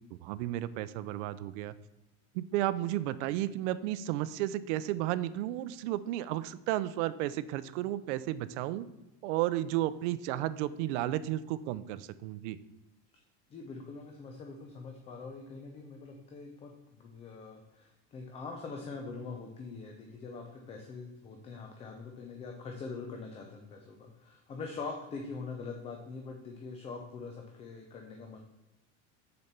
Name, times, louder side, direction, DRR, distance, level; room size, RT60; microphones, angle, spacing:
voice 1, 0.1-1.7 2.3-8.9 9.2-12.6, right 14 dB, 80° right, 15 dB, 0.6 m, -33 dB
voice 2, 13.5-16.7 17.0-28.4, left 4 dB, 20° left, 3 dB, 0.5 m, -43 dB
6.8 x 4.4 x 6.6 m, 0.98 s
cardioid pair, 180°, 35 cm